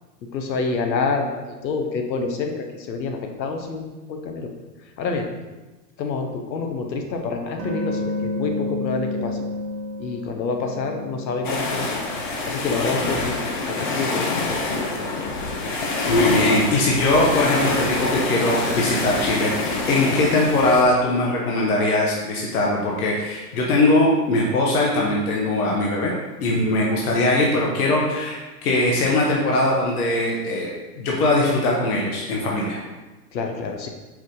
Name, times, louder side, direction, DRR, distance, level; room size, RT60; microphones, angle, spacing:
voice 1, 0.3-4.5 5.0-5.3 6.0-9.5 10.0-12.0 12.4-15.3 33.3-33.9, left 4 dB, 90° left, 4 dB, 0.9 m, -28 dB
sound 1, 7.6-12.3 12.6-17.4, left 2 dB, 75° right, 1.1 m, -33 dB
sound 2, 11.4-20.8, left 3 dB, 30° left, 0.4 m, -26 dB
voice 2, 16.1-26.1 26.4-32.8, left 2 dB, 60° left, -2 dB, 1.0 m, -21 dB
4.8 x 2.6 x 3.7 m, 1.2 s
hypercardioid pair, 140°, 50 cm